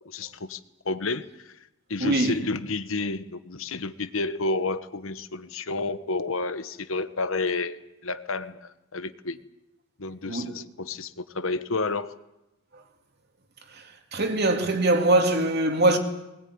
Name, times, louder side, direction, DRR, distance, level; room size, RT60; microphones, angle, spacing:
voice 1, 0.0-0.6 0.8-1.5 1.9-9.4 10.0-12.1, left 3 dB, 70° left, 1.2 m, -30 dB
voice 2, 2.0-2.4 10.3-10.5 14.1-16.0, right 2 dB, 50° right, 2.9 m, -22 dB
20.5 x 20.0 x 9.6 m
head